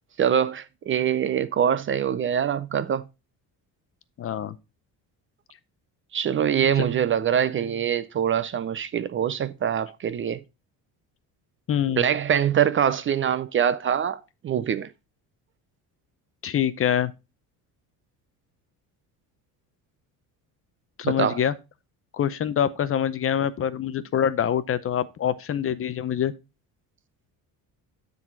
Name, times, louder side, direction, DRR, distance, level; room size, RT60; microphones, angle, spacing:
voice 1, 0.2-3.0 6.1-10.4 11.9-14.9 21.0-21.4, right 9 dB, 35° right, 0.4 m, -24 dB
voice 2, 4.2-4.6 6.8-6.9 11.7-12.1 16.4-17.1 21.0-21.5 22.1-26.3, left 9 dB, 35° left, 0.6 m, -25 dB
9.7 x 4.0 x 4.4 m
cardioid pair, 125°, 38 cm